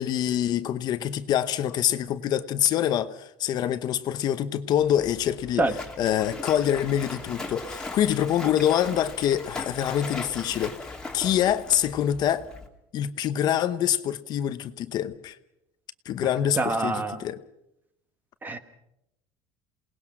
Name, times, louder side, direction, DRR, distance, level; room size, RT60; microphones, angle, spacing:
voice 1, 0.0-5.7 6.0-12.5 12.9-15.4 16.1-17.4, left 10 dB, 45° left, 0.9 m, -25 dB
Splash splatter, 4.8-12.7, left 3 dB, 10° left, 2.6 m, -39 dB
voice 2, 16.5-17.2 18.4-18.6, right 2 dB, 20° right, 1.4 m, -25 dB
28.0 x 19.0 x 6.1 m
cardioid pair, 150°, 10 cm